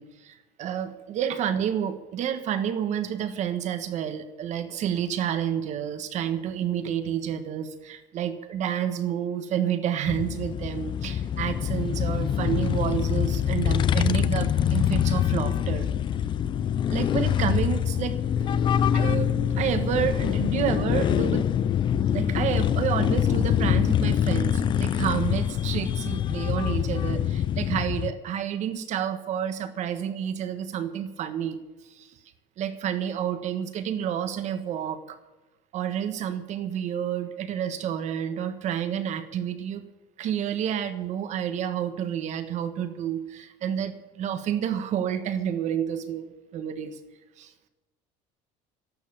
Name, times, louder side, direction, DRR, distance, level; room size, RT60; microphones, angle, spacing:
voice 1, 0.0-15.9 16.9-18.1 18.9-21.5 22.1-31.6 31.9-32.1 32.6-35.2 35.7-39.8 40.2-47.0 47.4-47.5, right 9 dB, 45° right, 9 dB, 1.4 m, -29 dB
sound 1, 10.1-28.1, left 9 dB, 30° left, 0.4 m, -25 dB
13.0 x 11.5 x 7.1 m, 1.1 s
cardioid pair, 155°, 17 cm